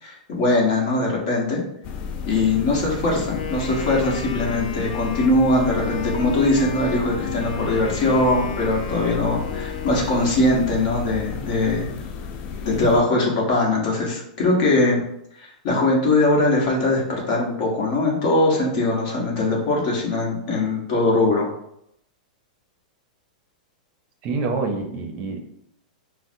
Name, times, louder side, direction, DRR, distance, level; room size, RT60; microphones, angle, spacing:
voice 1, 0.0-1.6 2.2-11.9 12.6-15.0 15.6-21.5, left 2 dB, 45° left, -2 dB, 1.1 m, -21 dB
sound 1, 1.8-13.0, left 6 dB, 30° left, 0.3 m, -33 dB
Wind instrument woodwind instrument, 3.1-10.8, left 6 dB, 85° left, 0.5 m, -34 dB
voice 2, 24.2-25.4, right 3 dB, 35° right, 4 dB, 0.6 m, -26 dB
3.9 x 2.0 x 2.7 m, 0.75 s
supercardioid pair, 150°, 4 cm